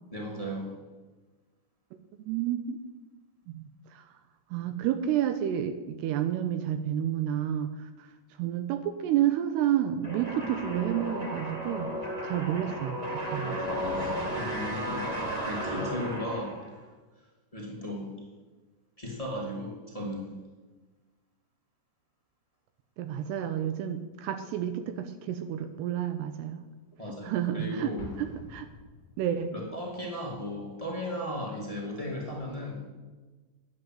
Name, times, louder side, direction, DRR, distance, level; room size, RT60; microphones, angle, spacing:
voice 1, 0.1-0.7 14.0-15.1 15.4-16.6 17.5-18.1 19.0-20.3 27.0-28.1 29.5-32.8, equal, 15° left, -3 dB, 1.2 m, -36 dB
voice 2, 2.2-2.8 3.5-4.0 4.5-8.1 8.4-11.9 12.2-13.6 23.0-26.6 27.2-27.9 28.2-28.7 29.2-29.5, right 10 dB, 80° right, 9 dB, 2.6 m, -30 dB
sound 1, 10.0-16.8, equal, 40° right, 0.5 m, -34 dB
Explosion, 28.0-29.7, left 4 dB, 50° left, 0.8 m, -47 dB
10.5 x 9.4 x 7.6 m, 1.3 s
omnidirectional pair, 5.2 m